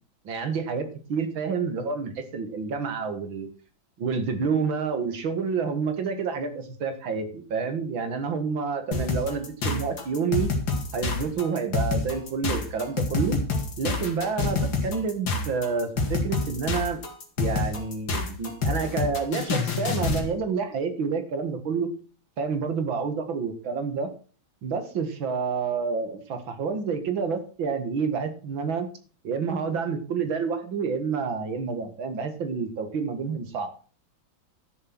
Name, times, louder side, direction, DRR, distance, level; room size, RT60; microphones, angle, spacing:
voice 1, 0.2-3.5 4.0-10.5 10.9-13.4 13.8-17.0 17.4-21.9 22.4-24.1 24.6-28.9 29.2-33.7, right 5 dB, 80° right, 8 dB, 2.6 m, -29 dB
sound 1, 8.9-20.3, left 3 dB, 70° left, 2.9 m, -27 dB
12.5 x 7.3 x 6.1 m, 0.39 s
omnidirectional pair, 2.1 m